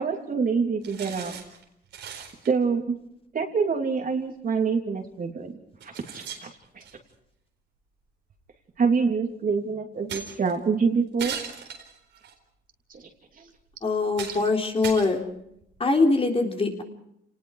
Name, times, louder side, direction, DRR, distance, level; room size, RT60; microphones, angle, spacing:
voice 1, 0.0-1.3 2.5-3.0 3.3-5.6 5.8-6.5 6.7-6.8 8.8-11.4 12.9-13.1 13.4-13.5 14.3-14.4, right 5 dB, 50° right, 3 dB, 3.0 m, -26 dB
sound 1, 0.8-1.6 1.9-2.5 4.0-4.1 5.0-5.1 5.8-7.1 8.3-8.4 10.1-10.6 11.2-12.3 13.0-13.1 13.7-13.8 14.1-14.5 14.8-15.8, right 7 dB, 90° right, 4.3 m, -38 dB
voice 2, 13.8-15.2 15.8-16.8, left 3 dB, 30° left, 2 dB, 3.7 m, -23 dB
29.0 x 19.5 x 4.9 m, 0.75 s
cardioid pair, 95°, 18 cm